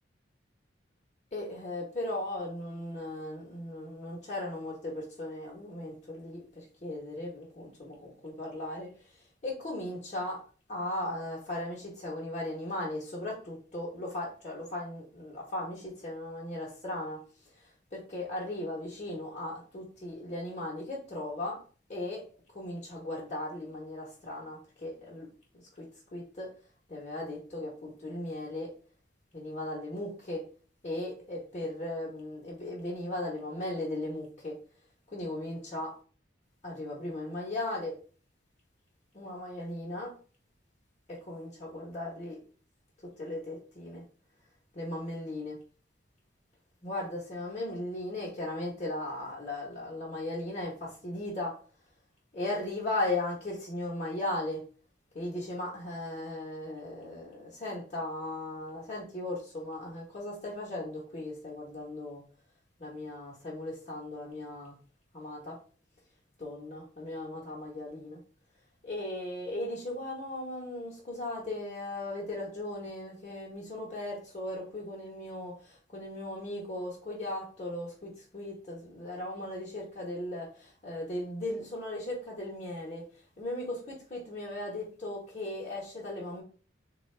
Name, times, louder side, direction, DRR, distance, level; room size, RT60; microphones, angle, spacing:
voice 1, 1.3-10.4 10.7-17.2 17.5-21.6 21.9-22.2 22.5-25.3 25.7-26.5 26.9-28.7 29.3-30.4 30.8-34.6 35.1-35.9 36.6-38.0 39.1-40.1 41.1-42.4 43.2-44.0 44.7-45.6 46.8-51.6 52.3-54.6 55.1-62.2 62.8-64.8 65.1-65.6 66.4-68.2 68.8-83.0 83.4-86.4, left 1 dB, 40° left, -6 dB, 0.9 m, -37 dB
3.7 x 2.3 x 3.2 m, 0.40 s
head